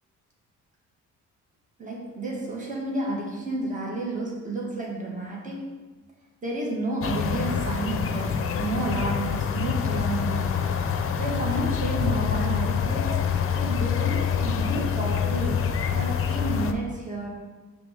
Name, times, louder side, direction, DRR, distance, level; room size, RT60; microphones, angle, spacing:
voice 1, 1.8-5.9 6.4-10.7 11.2-13.2 13.6-17.3, right 2 dB, 25° right, -3 dB, 1.5 m, -31 dB
sound 1, 7.0-16.7, left 7 dB, 45° left, 0.5 m, -26 dB
5.9 x 3.4 x 4.9 m, 1.2 s
cardioid pair, 90°, 30 cm